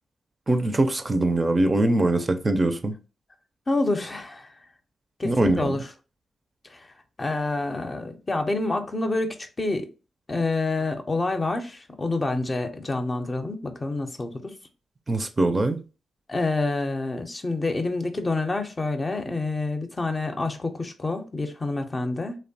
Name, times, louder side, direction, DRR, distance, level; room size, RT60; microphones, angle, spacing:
voice 1, 0.5-2.9 5.2-5.8 15.1-15.8, right 2 dB, 35° right, 0.4 m, -22 dB
voice 2, 3.7-4.5 5.2-5.9 6.7-6.8 7.2-9.9 10.3-14.5 16.3-22.4, left 2 dB, 35° left, 0.5 m, -27 dB
2.7 x 2.1 x 2.6 m
supercardioid pair, 40°, 0 cm